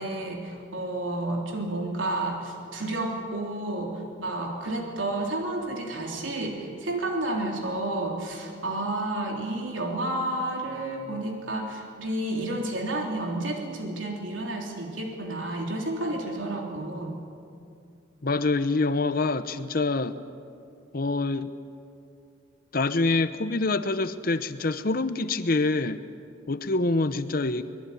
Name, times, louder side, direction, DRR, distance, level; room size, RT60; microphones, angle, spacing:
voice 1, 0.0-17.2, right 1 dB, 90° right, 1 dB, 3.5 m, -31 dB
voice 2, 18.2-20.2 20.9-21.5 22.7-26.0 26.5-27.6, left 3 dB, 50° left, 11 dB, 0.9 m, -26 dB
24.0 x 21.0 x 9.4 m, 2.4 s
head